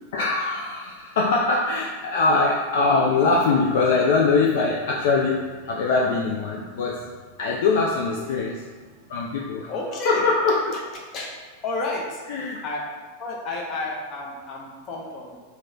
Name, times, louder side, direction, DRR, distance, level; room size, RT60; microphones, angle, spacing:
voice 1, 0.0-7.0 7.4-8.6 9.1-9.7 10.1-10.6 12.3-12.6, left 3 dB, 55° left, -2 dB, 0.3 m, -22 dB
sound 1, 3.7-9.6, right 4 dB, 50° right, 0.4 m, -46 dB
voice 2, 9.7-10.8 11.1-11.3 11.6-12.2 12.6-12.9 13.2-15.4, left 2 dB, 35° left, -2 dB, 0.7 m, -31 dB
3.0 x 2.1 x 3.7 m, 1.5 s
figure-of-eight pair, 90°, 0 cm